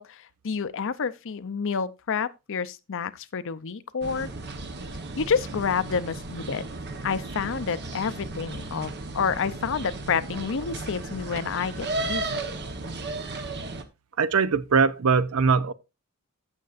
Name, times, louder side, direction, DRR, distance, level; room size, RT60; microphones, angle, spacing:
voice 1, 0.0-4.3 5.2-6.7 7.0-12.4, left 6 dB, 60° left, 0.6 m, -29 dB
sound 1, 4.0-13.8, right 2 dB, 50° right, 1.1 m, -35 dB
voice 2, 14.2-15.7, right 5 dB, 70° right, 0.6 m, -21 dB
15.0 x 6.7 x 2.5 m
head